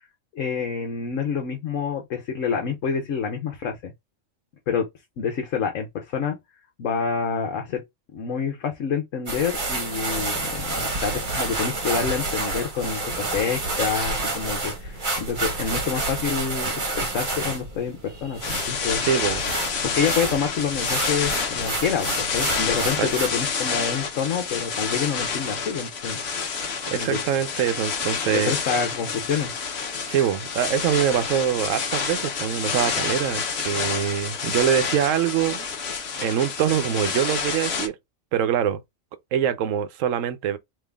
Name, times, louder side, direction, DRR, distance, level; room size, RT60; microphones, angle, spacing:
voice 1, 0.3-3.9 4.7-4.9 5.2-6.4 6.8-7.8 8.1-19.0 19.8-26.2 27.0-27.2 28.3-29.5, left 6 dB, 70° left, 1.2 m, -27 dB
sound 1, 9.3-23.3, right 2 dB, 40° right, 1.2 m, -29 dB
sound 2, 18.4-37.9, left 5 dB, 55° left, 1.1 m, -28 dB
voice 2, 19.1-19.4 23.0-23.1 26.9-28.5 30.1-35.7 36.2-38.0 38.3-38.8 39.3-40.6, right 9 dB, 75° right, 1.0 m, -24 dB
3.7 x 3.0 x 3.4 m
omnidirectional pair, 1.4 m